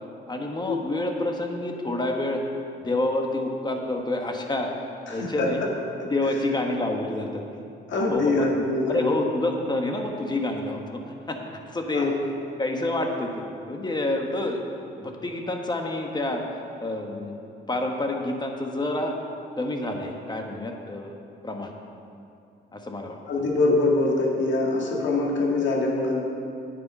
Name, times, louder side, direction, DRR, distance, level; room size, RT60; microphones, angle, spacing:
voice 1, 0.3-2.4 2.8-4.7 5.1-5.6 6.0-7.4 7.9-8.5 8.9-10.8 11.3-12.2 12.6-14.6 15.0-16.4 16.8-17.3 17.7-19.2 19.6-21.1 21.4-21.7 22.7-23.2, left 2 dB, 20° left, 2 dB, 1.4 m, -28 dB
voice 2, 5.1-5.7 7.9-9.1 11.9-12.1 23.3-26.2, left 2 dB, 70° left, -2 dB, 1.9 m, -24 dB
9.4 x 8.9 x 5.5 m, 2.5 s
cardioid pair, 90°, 20 cm